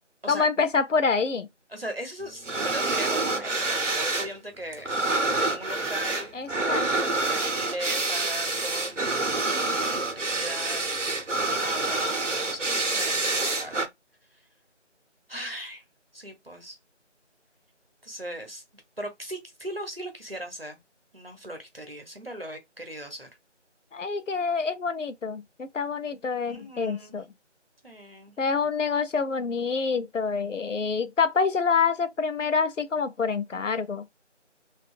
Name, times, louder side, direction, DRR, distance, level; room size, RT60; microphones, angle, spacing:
voice 1, 0.3-1.5 6.3-7.2 23.9-27.3 28.4-34.0, left 5 dB, 90° left, 0.6 m, -27 dB
voice 2, 1.7-4.9 5.4-6.3 7.3-10.9 11.6-13.9 14.3-14.4 15.3-15.8 16.1-16.8 18.0-18.6 19.0-20.8 21.1-23.3 26.5-27.2 27.8-28.3, equal, 50° right, 0.9 m, -38 dB
sound 1, 2.4-4.3 4.6-13.9, right 2 dB, 80° right, 0.9 m, -27 dB
2.7 x 2.5 x 2.4 m
figure-of-eight pair, 180°, 36 cm